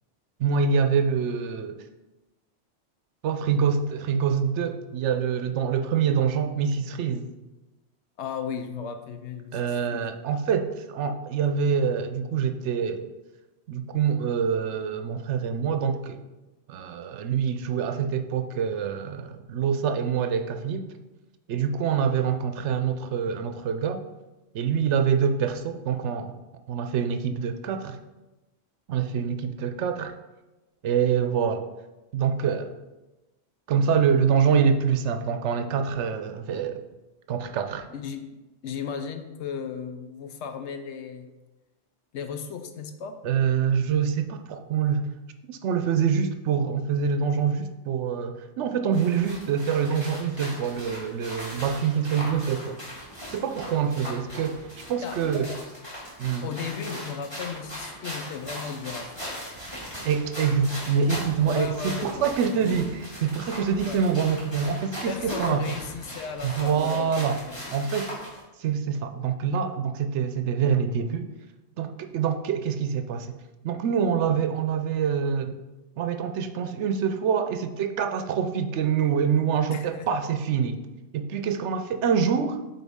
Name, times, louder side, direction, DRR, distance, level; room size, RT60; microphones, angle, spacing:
voice 1, 0.4-1.8 3.2-7.3 9.5-13.1 13.7-16.2 16.7-20.9 21.5-24.0 24.5-26.4 26.7-28.0 28.9-30.1 30.8-31.7 32.1-32.7 33.7-36.9 37.3-37.9 43.2-45.1 45.5-52.8 53.2-54.6 54.9-55.5 56.2-56.5 60.0-65.8 66.4-67.4 67.7-68.2 68.6-71.3 71.8-73.4 73.6-75.6 76.0-80.8 81.1-82.6, right 7 dB, 75° right, 8 dB, 0.9 m, -25 dB
voice 2, 8.2-10.1 37.9-38.3 38.6-41.3 42.1-43.2 54.1-54.2 55.0-55.6 56.4-59.3 61.4-62.8 63.8-64.0 65.1-67.6 79.7-80.1, left 6 dB, 70° left, 8 dB, 0.9 m, -35 dB
sound 1, 48.9-68.4, equal, 20° left, 2.3 m, -39 dB
8.1 x 4.1 x 3.5 m, 1.1 s
omnidirectional pair, 1.2 m